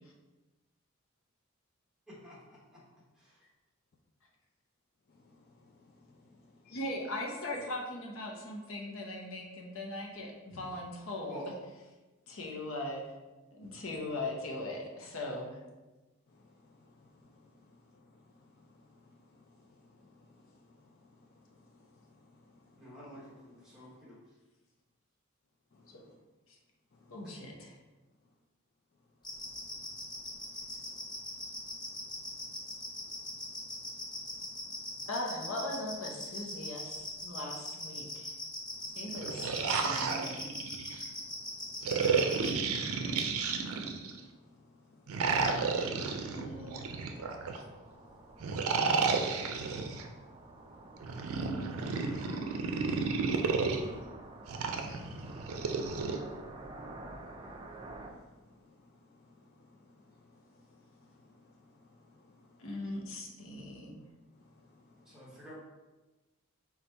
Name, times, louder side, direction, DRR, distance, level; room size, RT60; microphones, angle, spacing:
voice 1, 2.1-3.5 11.3-11.5 22.8-24.2 27.2-27.3 65.0-65.6, equal, 5° right, -6 dB, 1.1 m, -50 dB
voice 2, 5.1-6.4 6.7-6.8 10.5-10.7 13.6-13.8 16.3-22.8 23.7-23.8 25.7-26.1 26.9-27.2 29.3-35.1 38.7-39.0 41.2-46.4 47.9-53.4 53.7-62.7 64.4-65.4, left 2 dB, 50° left, -1 dB, 0.4 m, -62 dB
voice 3, 6.7-11.4 12.3-13.0 13.5-15.6 27.1-27.7 35.1-38.3 38.8-40.4 46.2-47.4 62.6-64.0, left 1 dB, 65° left, 0 dB, 0.7 m, -40 dB
sound 1, 29.2-42.5, left 1 dB, 20° left, 0.8 m, -40 dB
sound 2, 39.1-41.0 41.8-44.2 45.1-47.6 48.4-50.0 51.0-53.8 54.5-56.2, right 4 dB, 85° right, 0.4 m, -32 dB
sound 3, 46.5-58.1, right 2 dB, 25° right, 0.4 m, -49 dB
4.0 x 2.4 x 4.4 m, 1.1 s
head